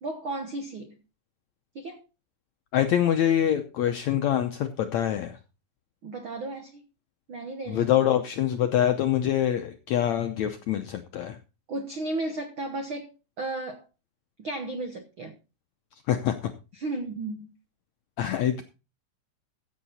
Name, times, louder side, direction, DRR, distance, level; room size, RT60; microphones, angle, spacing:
voice 1, 0.0-0.9 1.7-2.0 6.0-6.8 7.3-7.9 11.7-13.8 14.4-15.3 16.7-17.5, right 2 dB, 80° right, 1.1 m, -34 dB
voice 2, 2.7-5.4 7.7-11.4 16.1-16.5 18.2-18.6, left 10 dB, 75° left, 1.6 m, -25 dB
15.0 x 8.3 x 4.2 m
omnidirectional pair, 4.3 m